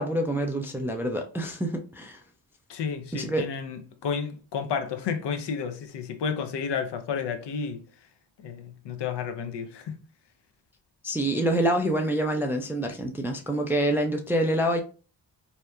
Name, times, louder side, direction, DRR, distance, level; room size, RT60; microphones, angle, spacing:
voice 1, 0.0-2.2 3.1-3.4 11.0-14.8, right 1 dB, 5° right, 0.3 m, -26 dB
voice 2, 2.7-7.8 8.4-10.0, left 6 dB, 60° left, 0.6 m, -31 dB
2.8 x 2.1 x 2.3 m
supercardioid pair, 45°, 47 cm